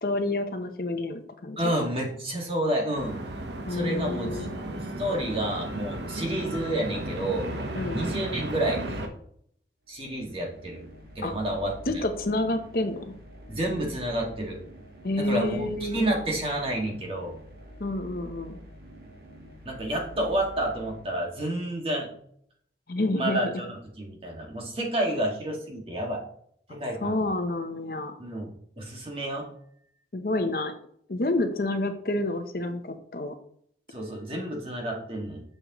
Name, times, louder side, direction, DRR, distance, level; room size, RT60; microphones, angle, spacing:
voice 1, 0.0-1.7 3.7-4.5 7.7-8.0 11.2-11.3 11.8-13.1 15.0-16.1 17.8-18.6 22.9-23.4 26.7-28.1 30.1-30.7 31.1-33.4 34.3-34.5, left 2 dB, 55° left, 7 dB, 0.8 m, -29 dB
voice 2, 1.6-3.2 3.7-4.5 5.0-7.5 7.9-8.8 9.9-10.8 11.2-11.8 13.5-14.6 15.2-17.3 19.7-22.1 23.1-26.2 26.7-27.3 28.2-28.5 28.8-29.5 33.9-35.4, right 1 dB, 30° right, -1 dB, 2.0 m, -30 dB
sound 1, 2.9-9.1, right 1 dB, 85° right, 1.1 m, -34 dB
sound 2, 9.8-21.7, equal, 60° right, 1.7 m, -47 dB
8.6 x 6.5 x 3.1 m, 0.65 s
head